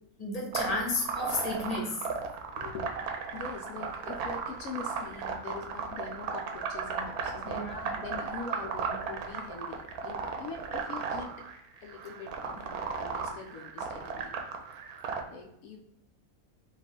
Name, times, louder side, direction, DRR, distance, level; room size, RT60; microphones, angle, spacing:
voice 1, 0.2-1.9 7.4-7.9, left 2 dB, 30° left, -2 dB, 1.1 m, -32 dB
sound 1, 0.5-15.2, right 5 dB, 85° right, 1.1 m, -35 dB
voice 2, 2.5-2.9 3.3-11.4 11.8-14.3 15.0-15.8, left 4 dB, 75° left, 2 dB, 1.0 m, -43 dB
4.1 x 2.6 x 3.6 m, 0.76 s
omnidirectional pair, 1.6 m